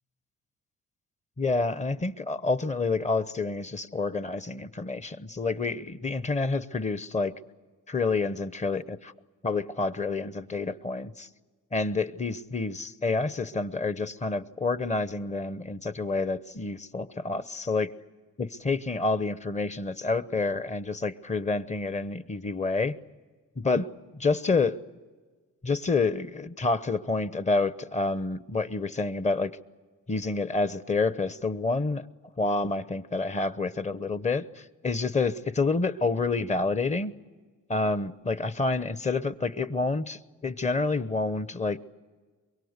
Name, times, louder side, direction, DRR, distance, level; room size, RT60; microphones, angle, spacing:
voice 1, 1.4-7.3 7.9-9.1 9.4-11.3 11.7-17.9 18.4-22.9 23.6-23.9 24.1-24.8 25.6-29.5 30.1-32.1 32.4-37.1 37.7-41.8, left 3 dB, 25° left, 14 dB, 0.9 m, -28 dB
23.5 x 23.0 x 8.1 m, 1.4 s
cardioid pair, 90°, 30 cm